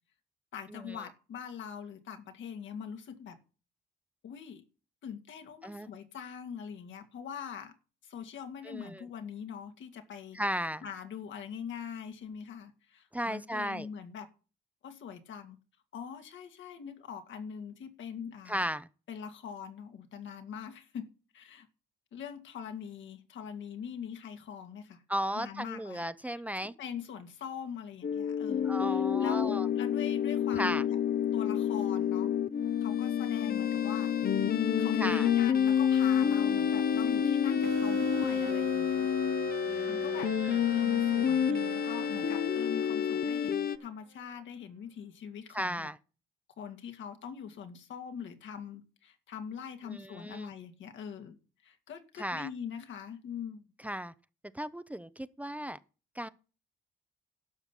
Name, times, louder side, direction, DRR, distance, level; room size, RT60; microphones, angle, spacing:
voice 1, 0.5-3.4 4.2-4.6 5.0-7.7 8.0-10.4 10.8-14.3 14.8-15.6 15.9-18.6 19.1-21.1 21.3-21.7 22.1-25.0 25.3-26.0 26.8-31.0 31.3-32.3 32.8-34.1 34.8-39.4 39.9-45.9 46.6-53.6, left 7 dB, 75° left, 2.2 m, -43 dB
voice 2, 8.6-9.1 10.3-10.8 13.1-13.9 18.5-18.9 25.1-26.7 28.6-29.7 30.5-30.8 35.0-35.3 39.6-40.6 45.5-46.0 49.9-50.5 52.2-52.5 53.8-54.1 54.5-55.8 56.1-56.3, equal, 5° right, 0.7 m, -35 dB
sound 1, 28.0-43.8, left 8 dB, 50° left, 0.9 m, -28 dB
sound 2, 37.6-44.0, right 9 dB, 80° right, 1.6 m, -42 dB
12.0 x 5.7 x 8.3 m
cardioid pair, 90°, 20 cm